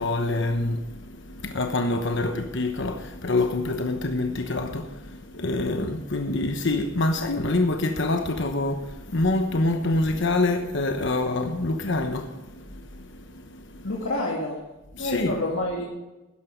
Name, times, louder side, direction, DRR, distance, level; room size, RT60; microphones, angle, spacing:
voice 1, 0.0-13.9 14.9-15.4, left 2 dB, 60° left, 1.1 m, -26 dB
voice 2, 13.8-14.6 15.0-15.9, left 1 dB, 80° left, 2.3 m, -28 dB
13.0 x 10.5 x 5.2 m
head